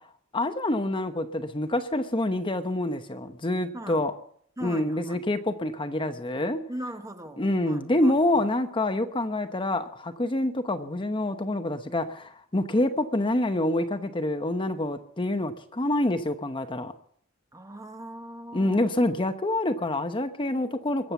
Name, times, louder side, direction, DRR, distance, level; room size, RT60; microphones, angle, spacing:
voice 1, 0.3-4.1 4.6-6.6 7.4-16.9 18.5-21.1, left 1 dB, 25° left, 8 dB, 1.0 m, -27 dB
voice 2, 3.7-4.0 4.6-5.2 6.7-8.5 17.5-18.8, right 1 dB, 15° right, 7 dB, 1.2 m, -40 dB
22.5 x 7.6 x 8.2 m, 0.64 s
head